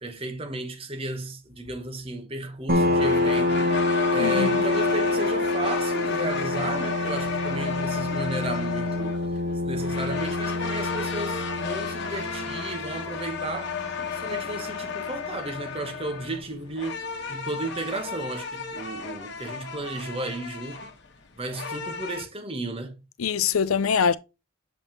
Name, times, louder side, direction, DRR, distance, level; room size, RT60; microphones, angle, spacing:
voice 1, 0.0-3.7 4.1-9.2 9.7-17.0 17.3-20.9 21.4-23.0, right 2 dB, 25° right, 1.1 m, -34 dB
sound 1, 2.7-16.0, left 2 dB, 45° right, 1.3 m, -27 dB
sound 2, 2.8-22.2, left 5 dB, 55° left, 1.2 m, -33 dB
voice 2, 4.2-4.6 23.2-24.2, left 6 dB, 85° left, 0.5 m, -23 dB
7.1 x 5.4 x 2.9 m
head